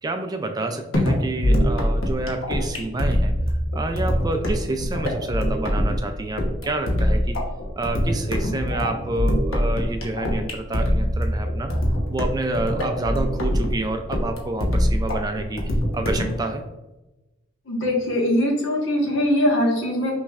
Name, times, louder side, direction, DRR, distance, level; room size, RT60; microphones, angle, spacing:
voice 1, 0.0-7.4 7.8-16.6, right 2 dB, 20° right, 5 dB, 0.3 m, -28 dB
sound 1, 0.9-16.4, equal, 85° left, 1.0 m, -23 dB
voice 2, 17.7-20.1, left 1 dB, 65° left, -1 dB, 1.3 m, -21 dB
5.9 x 3.1 x 2.4 m, 1.0 s
head